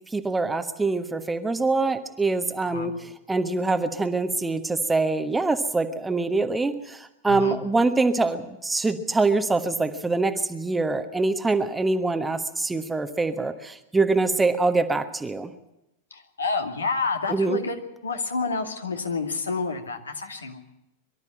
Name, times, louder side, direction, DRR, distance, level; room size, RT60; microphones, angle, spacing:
voice 1, 0.1-15.5 17.3-17.6, right 3 dB, 10° right, 9 dB, 1.3 m, -24 dB
voice 2, 7.3-7.6 16.1-20.7, left 4 dB, 75° left, 4 dB, 2.4 m, -29 dB
23.5 x 13.0 x 8.8 m, 0.90 s
figure-of-eight pair, 90°, 0 cm